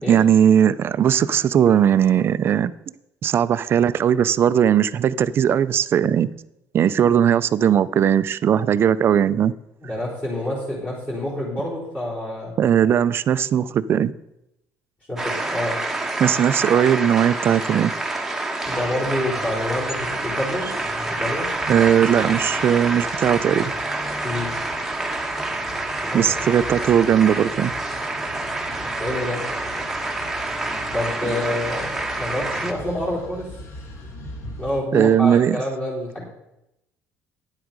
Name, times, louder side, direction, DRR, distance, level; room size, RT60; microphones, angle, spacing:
voice 1, 0.1-2.7 3.2-6.3 6.7-9.5 12.6-14.1 16.2-17.9 21.7-23.7 26.1-27.7 34.9-35.6, right 9 dB, 45° right, 0.4 m, -18 dB
voice 2, 9.8-12.5 15.1-15.8 18.6-20.7 21.0-21.7 24.2-24.5 26.0-26.3 28.8-29.4 30.9-33.5 34.6-36.2, left 1 dB, 20° left, 3.8 m, -27 dB
sound 1, 15.2-32.7, right 2 dB, 5° right, 1.2 m, -27 dB
sound 2, 18.6-34.8, left 1 dB, 55° left, 2.0 m, -41 dB
10.0 x 7.9 x 5.2 m
cardioid pair, 115°, 6 cm